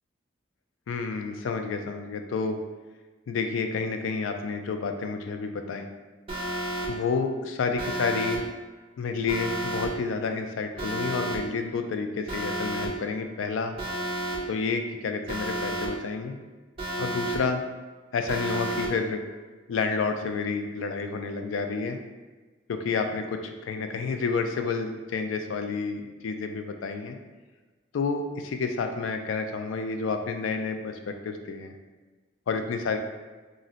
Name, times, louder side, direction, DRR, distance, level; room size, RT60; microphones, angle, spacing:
voice 1, 0.9-2.6 3.3-5.9 6.9-8.4 9.0-13.7 14.5-16.3 17.0-17.6 18.1-19.2 19.7-22.0 22.7-27.2 27.9-31.7 32.5-33.0, left 4 dB, 85° left, 6 dB, 0.3 m, -30 dB
Alarm, 6.3-6.9 7.8-8.4 9.3-9.9 10.8-11.4 12.3-12.9 13.8-14.4 15.3-15.9 16.8-17.4 18.3-18.9, right 1 dB, 30° right, 0.6 m, -31 dB
2.5 x 2.1 x 3.8 m, 1.3 s
head